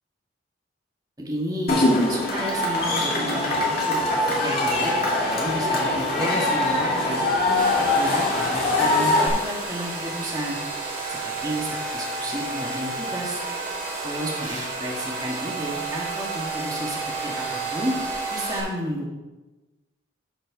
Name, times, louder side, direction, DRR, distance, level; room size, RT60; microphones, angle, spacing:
voice 1, 1.2-1.8 2.1-3.6 3.9-4.0 4.3-4.9 5.3-7.6 8.0-10.6 11.1-13.4 14.0-17.9 18.3-19.1, equal, 20° right, -3 dB, 1.8 m, -32 dB
Cheering / Crowd, 1.7-9.3, left 2 dB, 50° left, 2.1 m, -22 dB
Domestic sounds home sounds, 7.6-18.6, right 3 dB, 40° right, 2.4 m, -31 dB
12.0 x 4.8 x 4.7 m, 1.1 s
head